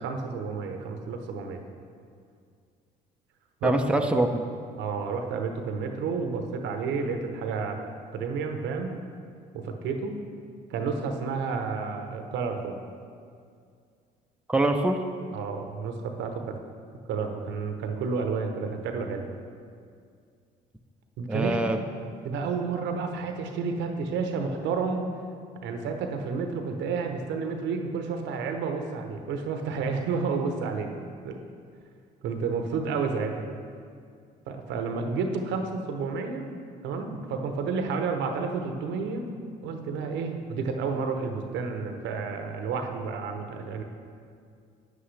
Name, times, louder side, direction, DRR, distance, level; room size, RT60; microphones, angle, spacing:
voice 1, 0.0-1.6 3.6-3.8 4.8-7.8 8.1-8.9 9.5-10.1 10.7-12.8 15.3-16.4 17.1-19.2 21.2-21.6 22.2-25.1 25.6-30.9 31.2-31.4 32.2-33.5 34.5-36.5 36.8-39.3 39.6-43.8, right 5 dB, 75° right, 5 dB, 0.9 m, -30 dB
voice 2, 3.6-4.4 14.5-15.0 21.3-21.8, right 1 dB, 5° right, 4 dB, 0.6 m, -24 dB
9.3 x 8.3 x 3.3 m, 2.3 s
supercardioid pair, 65°, 19 cm